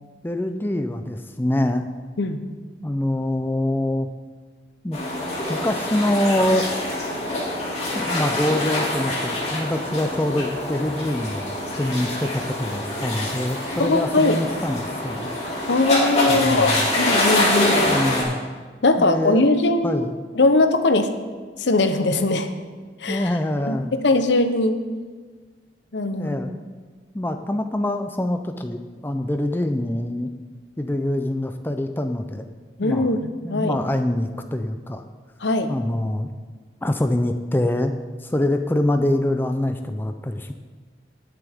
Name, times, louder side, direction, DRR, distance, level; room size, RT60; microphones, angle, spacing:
voice 1, 0.2-1.9 2.8-4.1 4.8-5.0 5.5-6.7 7.9-15.3 16.3-16.9 17.9-18.4 19.0-19.4 19.8-20.2 23.1-23.9 26.1-26.6 27.1-30.3 30.8-32.5 32.8-33.1 33.4-35.0 35.7-36.3 36.8-37.9 38.2-40.5, left 1 dB, 10° left, 6 dB, 0.4 m, -25 dB
sound 1, 4.9-18.2, left 1 dB, 35° left, 2.5 m, -25 dB
voice 2, 13.8-14.4 15.7-17.9 18.8-20.1 20.3-21.1 21.6-22.5 23.0-23.3 23.7-24.8 25.9-26.4 32.8-33.8 35.4-35.7, left 2 dB, 80° left, 8 dB, 0.8 m, -20 dB
19.0 x 7.0 x 3.5 m, 1.5 s
head